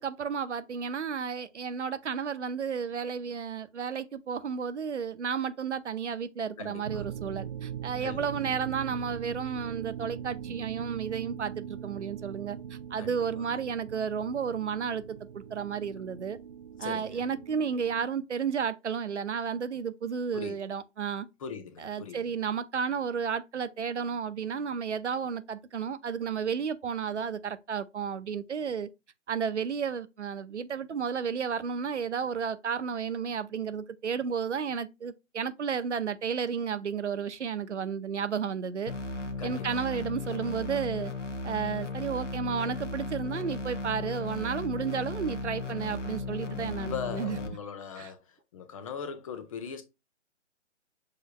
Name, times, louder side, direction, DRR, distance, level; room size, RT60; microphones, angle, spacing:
voice 1, 0.0-12.6 12.9-16.4 16.8-21.3 21.8-28.9 29.3-38.9 39.4-41.1 41.4-47.4 48.0-48.1, right 6 dB, 70° right, 0.7 m, -32 dB
voice 2, 6.6-7.0 8.0-8.4 13.0-13.5 16.8-17.3 20.3-20.6 21.4-22.2 39.4-39.8 46.4-48.2 48.5-49.8, left 7 dB, 30° left, 0.8 m, -40 dB
sound 1, 6.8-18.1, right 9 dB, 35° right, 0.4 m, -41 dB
sound 2, 38.9-47.5, left 3 dB, 90° left, 1.1 m, -36 dB
6.5 x 3.4 x 2.2 m
figure-of-eight pair, 135°, 36 cm